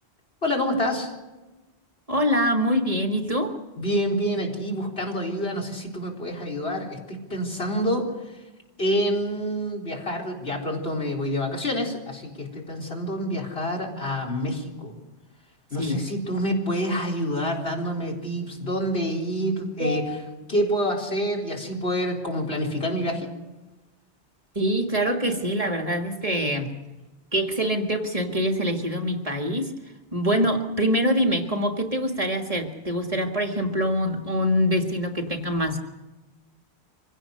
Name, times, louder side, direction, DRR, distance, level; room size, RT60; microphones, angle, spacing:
voice 1, 0.4-1.1 3.8-8.4 8.8-14.9 15.7-20.2 20.5-23.3, equal, 65° left, -1 dB, 4.2 m, -27 dB
voice 2, 2.1-3.6 15.8-16.0 19.8-20.2 24.6-26.7 27.3-29.7 30.1-35.8, equal, 35° right, 4 dB, 1.8 m, -24 dB
25.0 x 16.5 x 6.6 m, 1.1 s
omnidirectional pair, 1.1 m